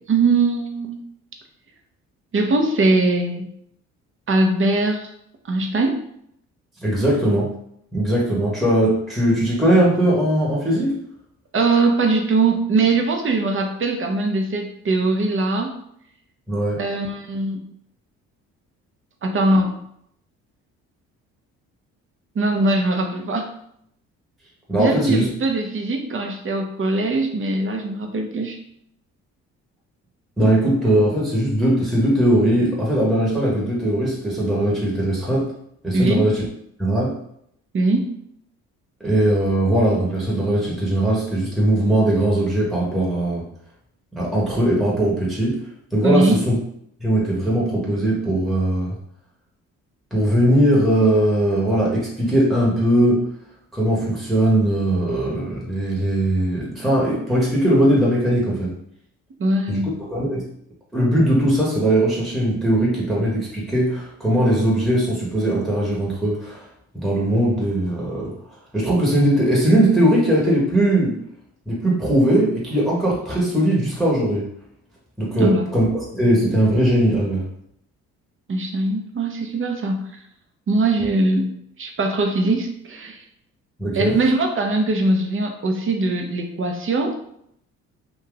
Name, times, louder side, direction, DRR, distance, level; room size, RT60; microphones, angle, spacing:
voice 1, 0.1-1.1 2.3-3.5 4.3-5.1 5.5-6.0 11.5-15.7 16.8-17.6 19.2-19.8 22.4-23.5 24.8-28.6 35.9-36.2 37.7-38.2 46.0-46.4 59.4-59.9 75.3-75.8 78.5-80.0 80.7-81.5 81.8-83.2 83.9-87.2, right 2 dB, 35° right, 4 dB, 0.7 m, -21 dB
voice 2, 6.8-7.6 7.9-10.9 16.5-16.8 24.7-25.3 30.4-35.5 35.8-36.4 36.8-37.2 39.0-43.4 44.2-45.6 45.9-46.5 47.0-48.9 50.1-53.3 53.7-58.7 59.7-60.5 60.9-66.6 66.9-68.3 68.7-71.2 71.7-74.5 75.2-77.4 83.8-84.1, right 1 dB, ahead, -5 dB, 1.1 m, -19 dB
2.6 x 2.4 x 3.8 m, 0.72 s
hypercardioid pair, 55°, 36 cm